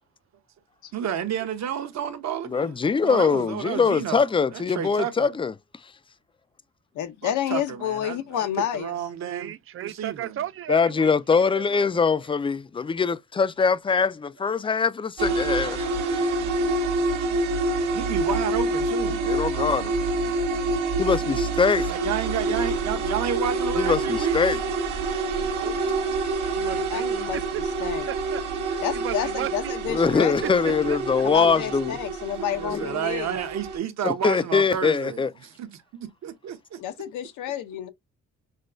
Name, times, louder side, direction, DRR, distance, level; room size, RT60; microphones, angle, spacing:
voice 1, 0.9-2.8 3.0-5.4 7.2-8.4 8.7-9.5 9.8-10.4 17.5-17.6 17.9-19.2 21.9-24.6 32.3-36.8, right 9 dB, 65° right, 1.1 m, -31 dB
voice 2, 2.5-5.5 10.7-15.9 16.2-16.3 19.2-20.0 21.0-21.9 23.8-24.6 29.9-32.0 32.7-32.9 34.0-35.3, left 5 dB, 20° left, 0.3 m, -23 dB
voice 3, 6.9-8.9 26.9-27.4 27.8-28.1 28.8-30.9 31.3-33.3 36.8-37.9, left 10 dB, 85° left, 0.7 m, -30 dB
voice 4, 9.2-11.1 11.4-11.9 25.5-25.9 26.6-27.6 28.1-28.4 28.7-29.8 30.4-31.2 32.4-32.5, right 11 dB, 45° right, 0.4 m, -35 dB
sound 1, 15.2-33.8, right 2 dB, 90° right, 1.4 m, -27 dB
6.2 x 2.2 x 2.5 m
cardioid pair, 90°, 30 cm